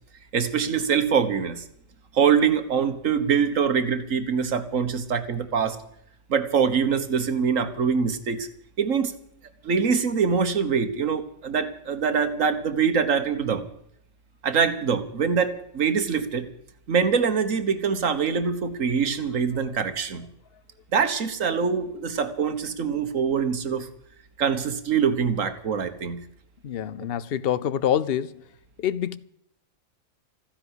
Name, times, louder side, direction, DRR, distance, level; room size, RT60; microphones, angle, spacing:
voice 1, 0.3-1.6 2.1-5.8 6.3-8.5 8.8-9.1 9.6-13.6 14.4-16.5 16.9-20.3 20.9-23.9 24.4-26.2, right 6 dB, 70° right, 1.7 m, -24 dB
voice 2, 26.6-28.4 28.8-29.2, left 10 dB, 55° left, 0.8 m, -26 dB
15.0 x 10.5 x 8.1 m
omnidirectional pair, 1.4 m